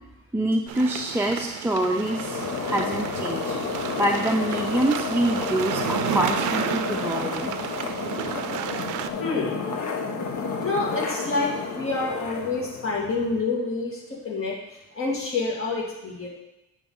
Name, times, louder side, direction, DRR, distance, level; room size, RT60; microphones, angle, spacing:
voice 1, 0.3-3.6 4.0-7.5, right 1 dB, 10° right, 0 dB, 0.5 m, -26 dB
sound 1, 0.7-9.1, right 11 dB, 85° right, 0.5 m, -32 dB
sound 2, 1.9-13.4, left 4 dB, 70° left, 1.0 m, -31 dB
voice 2, 9.2-9.6 10.6-14.5 14.9-16.3, left 3 dB, 45° left, -3 dB, 2.1 m, -27 dB
8.4 x 3.2 x 5.3 m, 0.95 s
cardioid pair, 90°, 30 cm